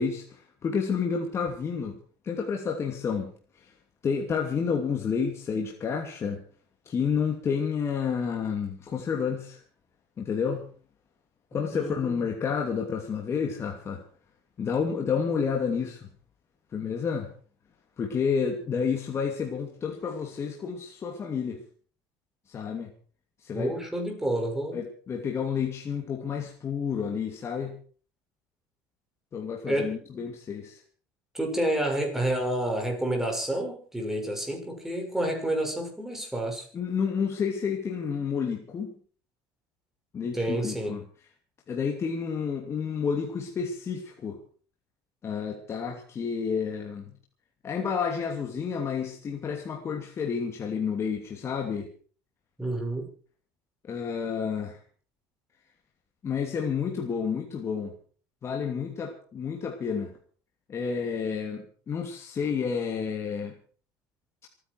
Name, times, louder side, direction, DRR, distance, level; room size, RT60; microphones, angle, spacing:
voice 1, 0.0-2.0 2.2-3.3 3.6-3.7 4.0-6.4 6.9-9.6 10.2-10.7 11.5-14.0 14.6-16.1 16.7-17.3 18.0-21.6 22.5-22.9 23.4-23.8 24.7-27.8 29.3-30.8 36.7-38.9 40.1-41.0 41.7-44.4 45.2-47.1 47.6-51.9 53.8-54.8 56.2-57.9 58.4-60.1 60.7-63.5, left 6 dB, 30° left, 1 dB, 2.8 m, -30 dB
voice 2, 11.7-12.2 23.5-24.8 29.6-30.2 31.3-36.7 40.3-41.0 52.6-53.1, right 1 dB, 5° right, 2 dB, 6.3 m, -29 dB
27.0 x 10.0 x 4.8 m, 0.43 s
cardioid pair, 130°, 8 cm